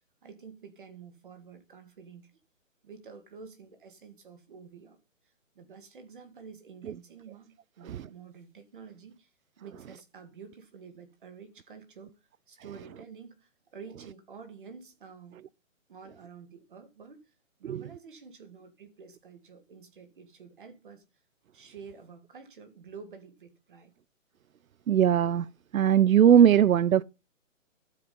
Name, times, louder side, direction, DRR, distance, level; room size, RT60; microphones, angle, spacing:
voice 1, 0.2-2.4 2.8-5.0 5.2-15.4 15.9-21.0 21.5-23.9, right 6 dB, 40° right, 2.1 m, -49 dB
voice 2, 24.9-25.5 25.7-27.0, right 9 dB, 85° right, 0.6 m, -20 dB
12.5 x 7.4 x 5.6 m
hypercardioid pair, 175°, 40 cm